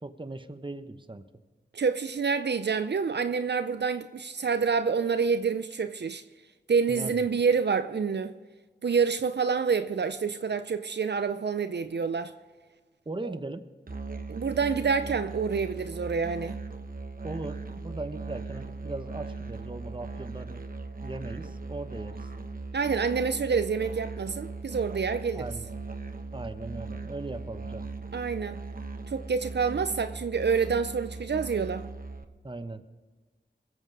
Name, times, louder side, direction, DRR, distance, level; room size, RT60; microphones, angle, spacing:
voice 1, 0.0-1.3 6.9-7.2 13.1-13.7 17.2-20.6 21.0-22.3 25.3-25.7 26.3-27.9 32.4-32.8, right 2 dB, 25° right, 1.0 m, -38 dB
voice 2, 1.7-6.2 6.7-8.3 8.8-12.3 13.2-13.3 14.3-16.6 22.7-25.4 28.1-28.6 29.1-31.9, right 5 dB, 70° right, 0.5 m, -27 dB
Musical instrument, 13.9-32.2, right 3 dB, 50° right, 1.0 m, -39 dB
21.5 x 8.0 x 4.8 m
wide cardioid pair, 45°, 18 cm